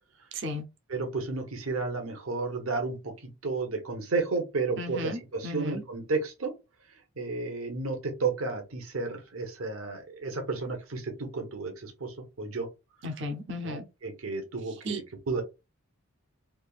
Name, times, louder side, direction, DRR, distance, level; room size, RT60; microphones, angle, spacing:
voice 1, 0.3-0.7 4.8-5.8 13.0-13.9 14.8-15.0, left 1 dB, 55° right, 0.6 m, -35 dB
voice 2, 0.9-6.5 7.2-12.7 13.6-15.4, right 3 dB, 75° right, 1.0 m, -32 dB
3.4 x 2.5 x 2.4 m
head